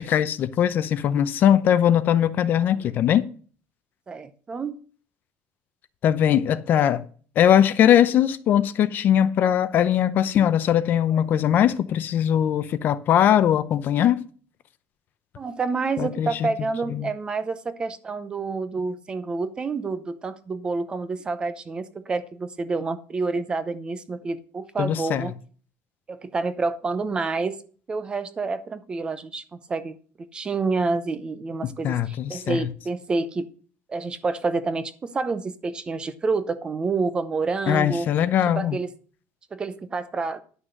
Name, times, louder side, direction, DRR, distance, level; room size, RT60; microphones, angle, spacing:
voice 1, 0.0-3.3 6.0-7.0 7.4-14.2 16.0-16.5 16.9-17.1 24.8-25.3 31.6-32.7 37.7-38.8, left 10 dB, 40° left, 0.6 m, -20 dB
voice 2, 4.1-4.8 15.4-25.3 26.1-27.6 27.9-33.5 33.9-38.1 38.5-38.9 39.5-40.4, right 4 dB, 20° right, 0.7 m, -28 dB
11.0 x 6.2 x 6.5 m
cardioid pair, 170°, 5 cm